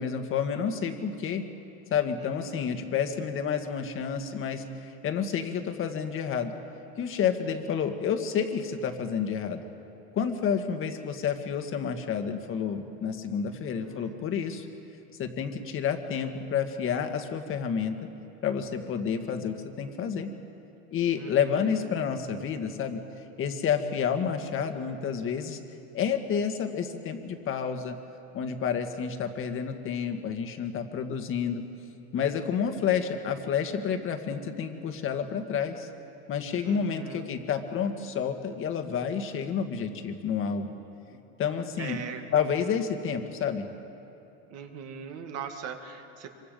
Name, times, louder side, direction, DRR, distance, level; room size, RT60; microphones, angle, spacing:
voice 1, 0.0-1.4 1.9-6.5 7.0-9.6 10.1-14.7 15.2-17.9 18.4-20.3 20.9-23.0 23.4-25.6 25.9-28.0 28.3-31.6 32.1-35.9 36.3-40.7 41.4-42.0 42.3-43.7, left 7 dB, 40° left, 6 dB, 1.8 m, -29 dB
voice 2, 2.2-2.7 13.5-14.3 21.2-21.8 36.6-37.3 41.1-41.2 41.8-42.3 44.5-46.3, right 7 dB, 50° right, 5 dB, 2.1 m, -41 dB
26.0 x 24.0 x 5.3 m, 2.8 s
cardioid pair, 135°, 33 cm